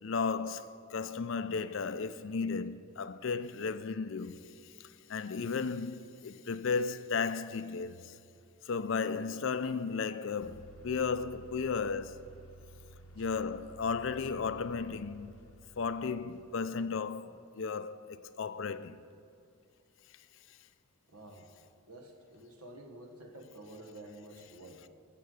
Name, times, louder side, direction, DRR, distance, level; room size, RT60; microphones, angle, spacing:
voice 1, 0.0-8.2 8.6-12.3 13.2-15.3 15.8-19.0, left 5 dB, 60° left, 0.5 m, -35 dB
sound 1, 10.4-17.0, right 1 dB, 85° left, 0.9 m, -54 dB
voice 2, 21.1-21.5 21.8-24.9, right 1 dB, 85° right, 1.5 m, -50 dB
14.0 x 7.6 x 6.4 m
head